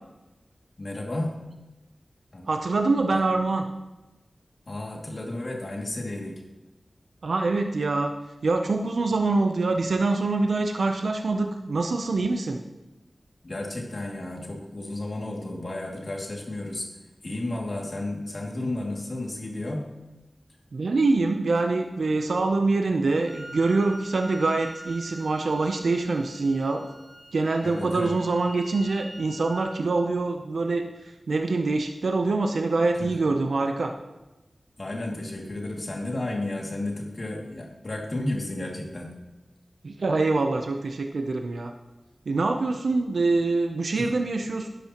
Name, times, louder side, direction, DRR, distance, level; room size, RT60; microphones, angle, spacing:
voice 1, 0.8-1.4 2.3-2.5 3.1-3.2 4.7-6.4 13.4-16.9 17.2-19.9 27.6-28.1 32.9-33.1 34.8-39.1 44.0-44.1, left 1 dB, 55° left, -1 dB, 2.4 m, -32 dB
voice 2, 2.5-3.6 7.2-8.1 8.4-12.6 20.7-26.9 27.3-30.9 31.3-33.9 39.8-41.7 42.3-44.7, right 3 dB, 85° right, 4 dB, 0.6 m, -25 dB
Wind instrument woodwind instrument, 23.3-29.9, equal, 20° right, 3.9 m, -44 dB
12.0 x 10.0 x 3.0 m, 1.1 s
cardioid pair, 50°, 0 cm